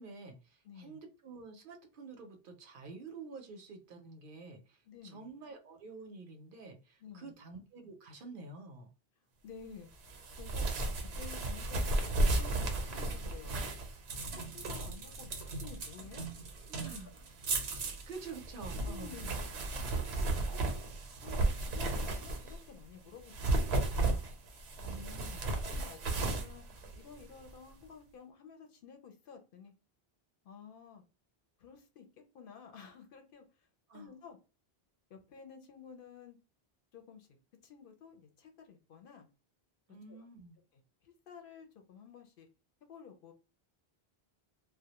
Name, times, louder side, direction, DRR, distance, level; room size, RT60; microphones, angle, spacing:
voice 1, 0.0-8.9 16.7-17.1 18.1-19.3 24.8-25.4 33.9-34.1 39.9-40.6, right 4 dB, 65° right, 5 dB, 0.7 m, -49 dB
voice 2, 0.6-1.0 4.9-5.3 7.0-7.3 9.4-10.7 11.0-11.9 12.3-13.6 14.1-16.2 16.8-17.1 17.9-18.0 18.9-19.3 19.7-20.6 21.2-24.1 25.0-26.6 27.0-29.7 30.4-31.0 31.6-32.1 32.3-33.7 33.9-34.4 35.1-36.4 36.9-37.3 37.6-39.3 40.1-40.2 41.0-42.5 42.9-43.3, left 6 dB, 65° left, 5 dB, 0.7 m, -52 dB
sound 1, 10.0-22.7 23.2-27.5, right 2 dB, 90° right, 0.9 m, -34 dB
2.2 x 2.0 x 2.8 m, 0.33 s
omnidirectional pair, 1.0 m